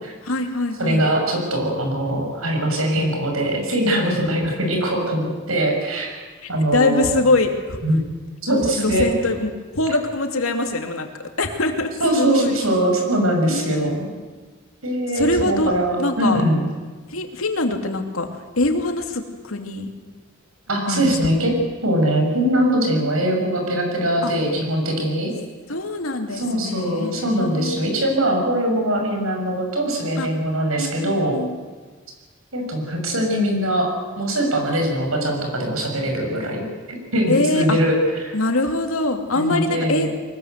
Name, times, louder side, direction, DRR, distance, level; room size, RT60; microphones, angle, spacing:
voice 1, 0.2-1.1 6.4-7.8 8.5-11.1 11.4-12.6 13.5-13.9 15.1-15.7 16.0-16.4 17.1-19.9 20.9-21.5 24.2-24.3 25.7-28.0 30.2-30.3 30.8-31.5 37.3-37.8 38.3-40.1, left 2 dB, 80° left, 5 dB, 2.6 m, -23 dB
voice 2, 0.8-6.1 6.5-7.1 7.8-8.0 8.4-9.1 12.0-14.1 14.8-16.6 20.7-21.5 21.8-25.3 26.3-31.4 32.5-33.9 34.2-38.4 39.3-40.1, right 1 dB, 90° right, 2 dB, 6.4 m, -22 dB
23.5 x 20.5 x 8.1 m, 1.4 s
head